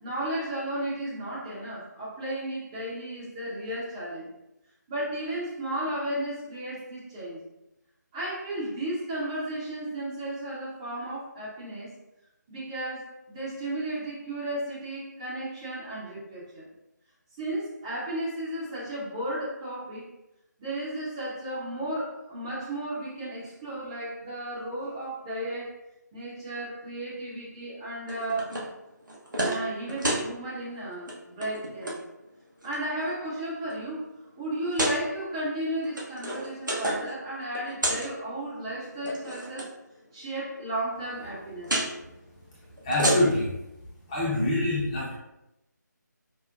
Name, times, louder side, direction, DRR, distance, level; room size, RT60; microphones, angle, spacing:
voice 1, 0.0-4.3 4.9-7.4 8.1-12.0 12.5-16.7 17.4-20.1 20.6-25.8 26.1-28.6 29.4-32.0 32.6-34.1 34.4-39.7 40.1-41.9, right 1 dB, 20° right, -8 dB, 0.7 m, -34 dB
sound 1, 28.1-28.7 29.1-29.6 29.9-30.3 30.9-31.1 31.4-32.0 32.6-33.1 33.7-33.8 34.6-35.0 35.8-37.1 37.4-38.1 38.9-39.7 41.6-41.9 42.8-43.5, right 1 dB, 85° right, 1.0 m, -29 dB
voice 2, 42.8-43.5 44.1-45.1, left 1 dB, 20° left, -8 dB, 0.8 m, -25 dB
5.1 x 2.1 x 2.4 m, 0.91 s
figure-of-eight pair, 155°, 10 cm